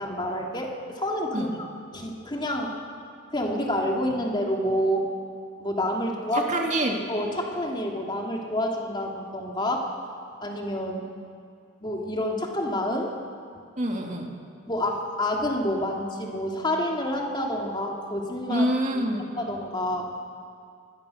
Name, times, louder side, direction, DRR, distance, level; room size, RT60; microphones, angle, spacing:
voice 1, 0.0-1.7 1.9-2.7 3.3-5.1 5.6-6.5 7.1-9.9 10.4-11.1 11.8-13.1 14.7-18.6 19.4-20.1, left 1 dB, 25° left, 0 dB, 3.0 m, -28 dB
voice 2, 6.3-7.0 13.8-14.3 18.5-19.3, right 1 dB, 40° right, 2 dB, 2.6 m, -26 dB
26.5 x 20.5 x 6.6 m, 2.3 s
head